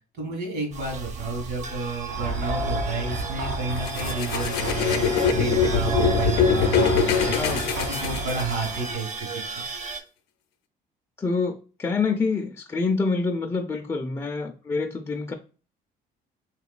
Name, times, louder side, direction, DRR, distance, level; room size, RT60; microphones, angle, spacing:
voice 1, 0.2-9.1 9.5-9.6, right 3 dB, 70° right, 1.7 m, -31 dB
sound 1, 0.7-10.0, right 4 dB, 45° right, 0.7 m, -35 dB
sound 2, 2.1-9.0, right 2 dB, 85° right, 0.7 m, -31 dB
sound 3, 3.8-8.8, left 6 dB, 90° left, 0.5 m, -23 dB
voice 2, 7.3-7.7 11.2-15.3, left 4 dB, 15° left, 0.3 m, -26 dB
3.4 x 2.9 x 2.3 m
cardioid pair, 110°, 17 cm